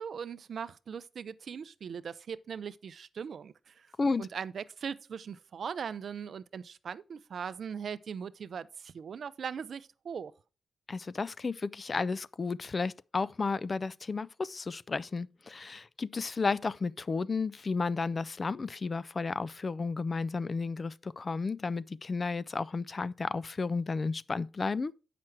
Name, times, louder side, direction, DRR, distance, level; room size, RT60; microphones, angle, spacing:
voice 1, 0.0-3.9 4.2-10.3, right 7 dB, 70° right, 0.4 m, -40 dB
voice 2, 10.9-24.9, left 4 dB, 45° left, 0.3 m, -33 dB
7.6 x 5.9 x 4.5 m
cardioid pair, 55°, 0 cm